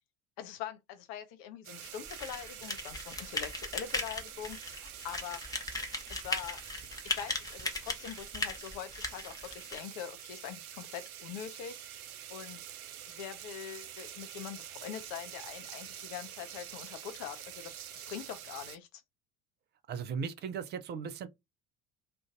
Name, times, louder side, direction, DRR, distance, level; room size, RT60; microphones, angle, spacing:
voice 1, 0.4-5.4 6.1-6.6 7.0-12.6 13.1-19.0, left 9 dB, 50° left, 0.5 m, -43 dB
sound 1, 1.6-18.8, right 10 dB, 75° right, 0.5 m, -47 dB
sound 2, 2.1-9.8, left 2 dB, 10° left, 0.6 m, -38 dB
voice 2, 19.9-21.3, right 6 dB, 25° right, 0.3 m, -37 dB
2.5 x 2.3 x 3.7 m
figure-of-eight pair, 60°, 44 cm